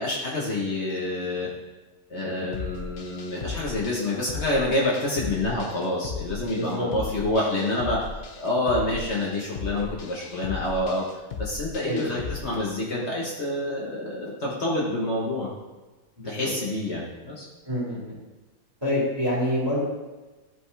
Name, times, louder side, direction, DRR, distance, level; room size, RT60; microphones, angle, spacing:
voice 1, 0.0-1.5 2.1-11.1 11.4-15.6 16.2-17.4, left 1 dB, 50° left, -4 dB, 1.5 m, -27 dB
sound 1, 2.5-12.4, left 5 dB, 70° left, 0.4 m, -36 dB
voice 2, 6.5-6.9 11.8-12.2 16.2-16.5 17.6-18.1 18.8-19.8, left 1 dB, 15° right, -6 dB, 2.4 m, -27 dB
11.0 x 5.2 x 3.4 m, 1.2 s
omnidirectional pair, 1.5 m